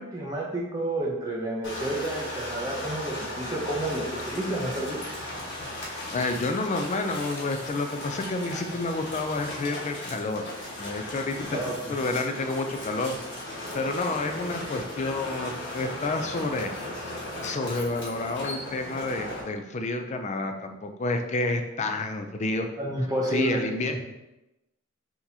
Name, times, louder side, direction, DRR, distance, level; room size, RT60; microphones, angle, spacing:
voice 1, 0.0-5.0 11.5-12.0 22.8-23.6, right 1 dB, 20° right, -5 dB, 0.6 m, -30 dB
sound 1, 1.6-19.4, left 1 dB, 60° left, 1.5 m, -37 dB
voice 2, 6.1-10.5 10.8-11.6 11.9-13.2 13.7-16.7 17.4-22.7 23.3-24.0, left 2 dB, 35° left, 6 dB, 0.4 m, -29 dB
5.9 x 2.9 x 2.7 m, 0.97 s
head